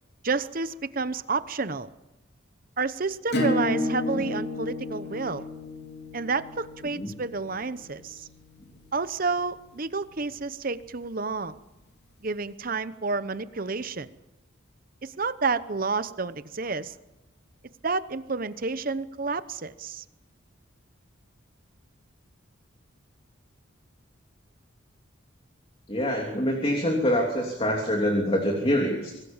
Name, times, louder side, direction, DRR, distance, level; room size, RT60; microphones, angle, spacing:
voice 1, 0.2-1.9 2.8-5.5 6.1-8.3 8.9-11.6 12.2-14.1 15.0-16.9 17.8-20.0, right 4 dB, 45° right, 13 dB, 0.9 m, -30 dB
Acoustic guitar / Strum, 3.3-8.6, left 1 dB, 55° left, 3.6 m, -31 dB
voice 2, 25.9-29.1, equal, 30° left, 1 dB, 3.0 m, -25 dB
25.0 x 19.5 x 7.3 m, 1.0 s
head